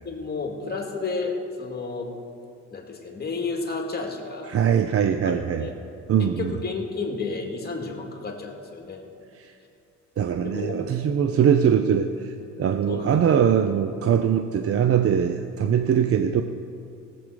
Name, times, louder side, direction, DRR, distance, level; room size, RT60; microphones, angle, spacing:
voice 1, 0.0-2.1 2.7-4.5 5.2-5.7 6.2-9.0 10.4-11.1 12.9-13.1, left 4 dB, 30° left, 1 dB, 2.2 m, -32 dB
voice 2, 4.5-5.7 6.1-6.5 9.4-9.5 10.2-16.4, right 8 dB, 50° right, 8 dB, 0.6 m, -22 dB
17.5 x 7.8 x 4.9 m, 2.6 s
cardioid pair, 90°, 30 cm